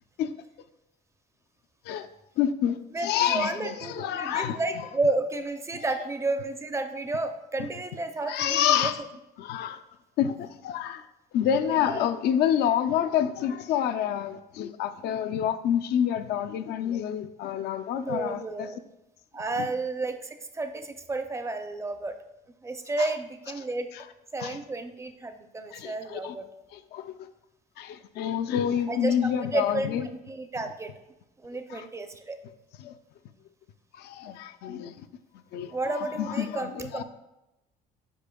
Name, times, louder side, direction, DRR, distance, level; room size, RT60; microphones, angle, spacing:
voice 1, 2.4-4.8 5.7-5.8 8.3-9.0 9.4-9.8 10.2-11.0 11.3-18.7 19.6-19.7 23.0-23.1 24.4-24.6 25.7-26.3 26.7-27.1 27.8-30.1 31.7-31.8 32.8-32.9 34.0-35.1 35.5-35.7 36.0-37.0, left 9 dB, 75° left, 9 dB, 0.5 m, -28 dB
voice 2, 2.9-8.9 11.6-12.0 18.0-18.8 19.3-22.2 22.6-23.9 24.3-26.5 28.9-30.9 31.4-32.4 35.7-37.0, right 2 dB, 15° right, 8 dB, 0.5 m, -32 dB
8.4 x 5.0 x 2.3 m, 0.94 s
cardioid pair, 110°, 17 cm